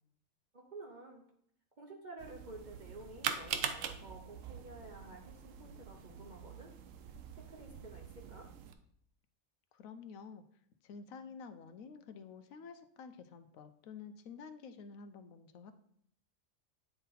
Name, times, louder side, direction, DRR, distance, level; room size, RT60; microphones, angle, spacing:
voice 1, 0.5-1.2 1.8-6.8 7.3-8.5, right 2 dB, 40° right, 0 dB, 0.8 m, -51 dB
sound 1, 2.2-8.7, right 8 dB, 70° right, 1.0 m, -43 dB
voice 2, 9.7-10.4 10.8-15.7, left 5 dB, 80° left, 9 dB, 1.0 m, -50 dB
9.3 x 3.9 x 4.0 m, 0.67 s
omnidirectional pair, 1.4 m